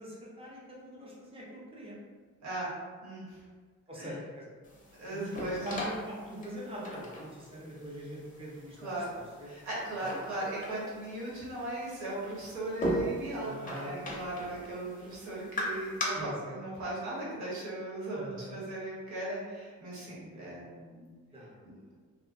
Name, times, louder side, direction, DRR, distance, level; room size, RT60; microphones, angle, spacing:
voice 1, 0.0-2.0 3.9-4.5 5.1-9.5 10.0-10.1 13.4-14.0 16.1-16.5 18.1-18.6 20.3-20.5 21.3-21.9, equal, 20° right, -6 dB, 0.8 m, -43 dB
voice 2, 3.0-3.4 3.9-4.1 5.0-5.7 8.8-9.1 9.4-21.1, right 1 dB, 70° right, -6 dB, 1.1 m, -37 dB
sound 1, 4.6-16.0, equal, 25° left, 0.6 m, -40 dB
2.6 x 2.1 x 2.4 m, 1.5 s
cardioid pair, 90°, 30 cm